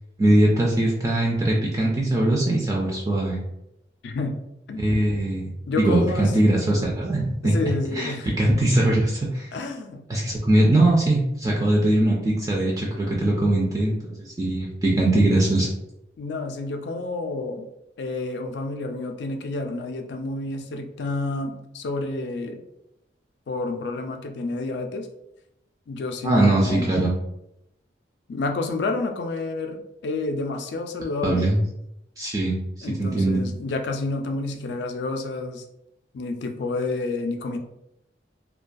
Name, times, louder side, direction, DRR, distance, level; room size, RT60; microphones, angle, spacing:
voice 1, 0.2-3.4 4.8-5.5 5.8-9.5 10.1-15.7 26.2-27.1 31.2-31.6 32.2-32.6 33.0-33.4, right 1 dB, 20° right, -3 dB, 0.3 m, -21 dB
voice 2, 4.0-4.4 4.7-4.8 5.7-6.3 7.4-8.3 9.5-10.0 16.2-17.7 18.0-22.6 23.5-25.1 25.9-26.9 28.3-31.5 32.8-35.6 36.1-37.6, left 3 dB, 70° left, 5 dB, 0.3 m, -29 dB
2.3 x 2.2 x 2.5 m, 0.82 s
head